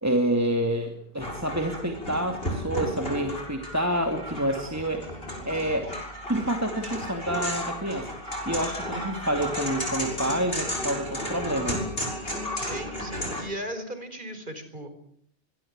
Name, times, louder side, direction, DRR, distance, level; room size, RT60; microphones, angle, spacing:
voice 1, 0.0-5.1 5.5-5.9 6.3-8.1 8.5-11.8, right 1 dB, 15° right, 5 dB, 2.6 m, -28 dB
sound 1, 1.2-13.4, equal, 60° left, 7.5 m, -33 dB
voice 2, 12.2-14.9, right 1 dB, 45° right, 10 dB, 4.9 m, -37 dB
24.0 x 22.5 x 8.9 m, 0.66 s
omnidirectional pair, 1.1 m